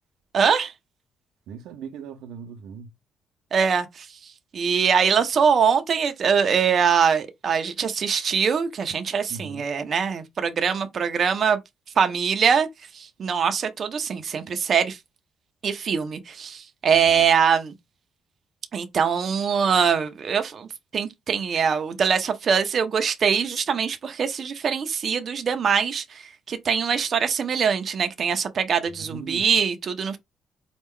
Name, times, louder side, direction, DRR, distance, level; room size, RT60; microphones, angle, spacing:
voice 1, 0.3-0.7 3.5-4.1 4.5-11.6 12.0-12.7 12.9-15.0 15.6-17.7 18.7-30.2, right 6 dB, 45° right, 0.6 m, -23 dB
voice 2, 1.5-2.9 9.3-9.7 16.9-17.4 29.1-29.5, right 6 dB, 85° right, 0.6 m, -39 dB
4.3 x 2.3 x 3.6 m
cardioid pair, 120°, 0 cm